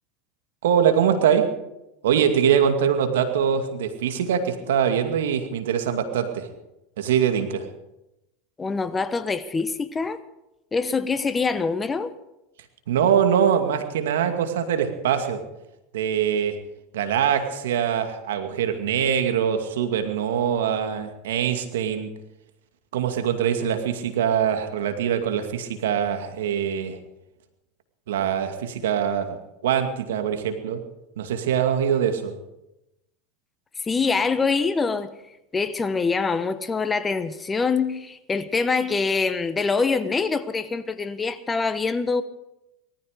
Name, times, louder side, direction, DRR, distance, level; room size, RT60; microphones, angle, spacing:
voice 1, 0.6-1.5 2.0-6.5 7.0-7.7 12.9-15.4 15.9-16.6 16.9-22.1 22.9-27.0 28.1-29.4 29.6-30.8 31.2-32.3, right 8 dB, 80° right, 2.3 m, -23 dB
voice 2, 8.6-10.2 10.7-12.1 33.8-35.1 35.5-42.2, left 4 dB, 20° left, 1.1 m, -24 dB
19.0 x 14.0 x 5.1 m
hypercardioid pair, 105°, 0 cm